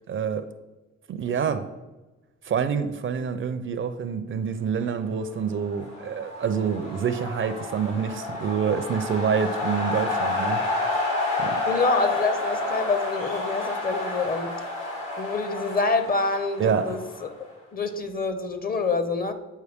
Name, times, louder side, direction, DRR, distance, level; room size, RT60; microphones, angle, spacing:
voice 1, 0.1-0.5 1.1-1.7 2.4-10.6 11.4-11.6 16.6-17.0, right 6 dB, 45° right, 11 dB, 0.5 m, -27 dB
sound 1, 5.5-17.5, left 2 dB, 80° left, 2.3 m, -30 dB
voice 2, 11.7-14.5 15.2-17.4 17.7-19.3, left 3 dB, 30° left, 9 dB, 0.7 m, -26 dB
8.2 x 4.4 x 3.5 m, 1.1 s
cardioid pair, 90°, 30 cm